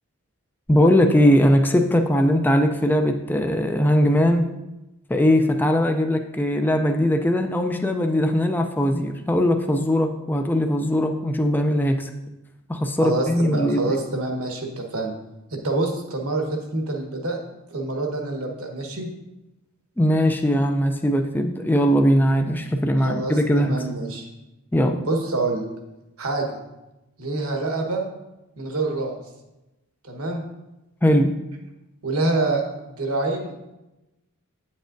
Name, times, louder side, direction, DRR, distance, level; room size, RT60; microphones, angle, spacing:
voice 1, 0.7-4.5 5.1-12.1 12.7-14.0 20.0-23.7 24.7-25.0 31.0-31.4, equal, 10° left, 5 dB, 0.4 m, -20 dB
voice 2, 13.0-15.1 15.5-17.4 17.7-19.1 23.0-24.3 25.0-25.6 26.2-26.5 27.2-28.0 28.6-29.2 30.0-30.4 32.0-33.5, right 2 dB, 70° right, 2 dB, 1.2 m, -26 dB
8.9 x 7.3 x 2.6 m, 0.98 s
head